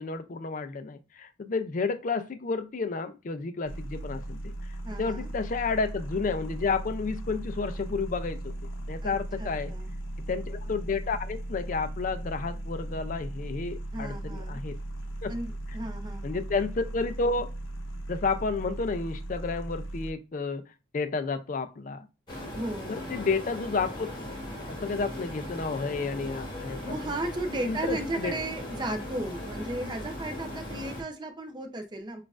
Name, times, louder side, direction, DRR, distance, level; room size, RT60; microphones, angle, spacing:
voice 1, 0.0-4.5 5.0-8.5 8.9-9.7 10.3-14.8 15.2-15.3 16.2-17.5 18.1-20.6 20.9-22.1 22.9-24.1 24.7-27.0 27.6-28.3, left 4 dB, 40° left, 0.4 m, -31 dB
sound 1, 3.6-20.1, right 1 dB, 75° left, 0.7 m, -37 dB
voice 2, 4.8-5.3 9.0-9.9 13.9-14.6 15.3-16.4 22.5-23.2 26.8-32.2, right 2 dB, 20° right, 0.5 m, -35 dB
sound 2, 22.3-31.0, left 1 dB, 20° left, 1.1 m, -38 dB
6.0 x 2.4 x 2.4 m
head